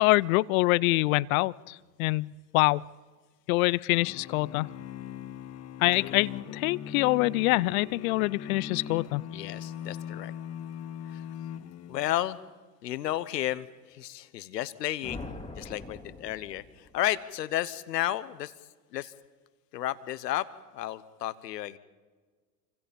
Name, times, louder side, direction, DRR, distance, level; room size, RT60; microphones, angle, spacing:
voice 1, 0.0-2.8 3.5-4.7 5.8-9.2, left 22 dB, 60° left, 22 dB, 0.7 m, -25 dB
sound 1, 3.9-12.3, left 8 dB, 30° left, 1.3 m, -40 dB
voice 2, 9.3-10.3 11.0-11.2 11.9-12.4 12.8-15.3 15.5-18.5 18.9-19.1 19.7-20.5 20.7-21.8, left 13 dB, 75° left, 16 dB, 1.3 m, -32 dB
sound 2, 15.0-17.0, left 2 dB, 10° left, 2.5 m, -42 dB
27.5 x 25.5 x 5.3 m, 1.4 s
hypercardioid pair, 85°, 49 cm